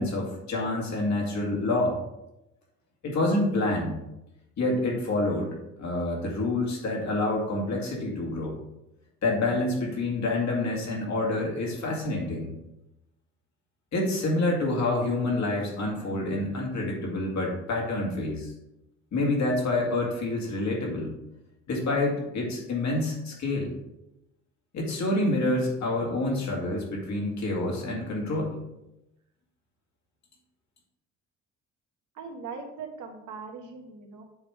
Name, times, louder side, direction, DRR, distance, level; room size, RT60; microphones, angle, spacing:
voice 1, 0.0-2.0 3.0-4.0 4.6-8.6 9.2-12.5 13.9-18.5 19.1-21.1 21.7-23.7 24.7-28.6, left 2 dB, 65° left, -1 dB, 2.3 m, -27 dB
voice 2, 32.1-34.2, right 5 dB, 85° right, 3 dB, 1.3 m, -40 dB
7.9 x 3.4 x 4.9 m, 0.90 s
cardioid pair, 90°, 30 cm